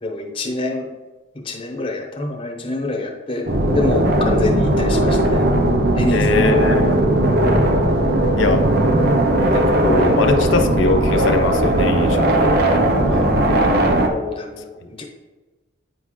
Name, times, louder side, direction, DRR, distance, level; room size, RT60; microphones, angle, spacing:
voice 1, 0.0-0.9 1.3-5.4 5.9-6.3 12.4-12.6 13.1-15.0, left 2 dB, 25° left, 1 dB, 0.9 m, -27 dB
sound 1, 3.5-14.1, right 1 dB, 50° right, 0.7 m, -17 dB
voice 2, 6.1-7.0 8.4-8.6 9.5-12.5, left 3 dB, 65° left, 5 dB, 0.6 m, -21 dB
9.2 x 3.8 x 3.1 m, 1.2 s
head